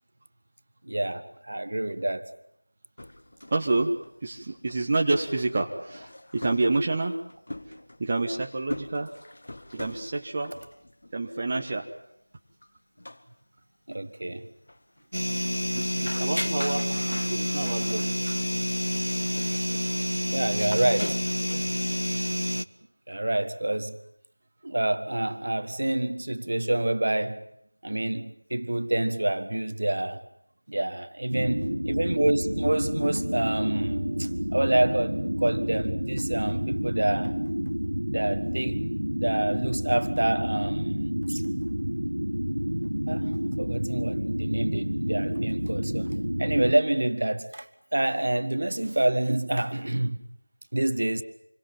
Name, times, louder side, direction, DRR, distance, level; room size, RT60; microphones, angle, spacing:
voice 1, 0.8-2.3 13.9-14.5 20.3-21.2 23.1-24.0 24.6-27.5 27.8-30.2 30.7-37.4 38.1-38.8 39.2-41.4 43.1-50.2 50.7-51.2, right 1 dB, 40° right, 1.6 m, -27 dB
sound 1, 3.0-11.2 11.5-11.6 12.6-12.7 13.0-13.2 13.9-14.0 14.7-15.3 15.7-18.5, left 1 dB, 40° left, 1.8 m, -43 dB
voice 2, 3.5-3.9 4.2-7.1 8.0-9.1 9.7-10.5 11.1-11.9 15.3-15.5 15.8-18.1, right 2 dB, 15° right, 1.3 m, -28 dB
sound 2, 15.1-22.6, equal, 85° left, 1.3 m, -28 dB
sound 3, 31.3-46.7, equal, 90° right, 1.0 m, -29 dB
28.0 x 23.5 x 7.7 m
figure-of-eight pair, 175°, 0 cm